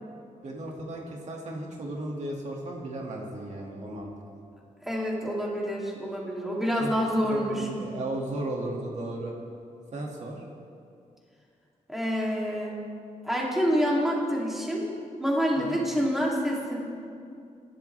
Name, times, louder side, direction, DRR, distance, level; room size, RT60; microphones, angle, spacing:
voice 1, 0.4-4.4 6.8-6.9 7.3-9.3 9.9-10.4 15.6-15.8, right 1 dB, 60° right, -1 dB, 2.1 m, -35 dB
voice 2, 4.8-7.7 11.9-12.8 13.2-14.8 15.2-16.8, equal, ahead, -4 dB, 2.7 m, -27 dB
23.5 x 12.0 x 3.4 m, 2.4 s
wide cardioid pair, 135°, 13 cm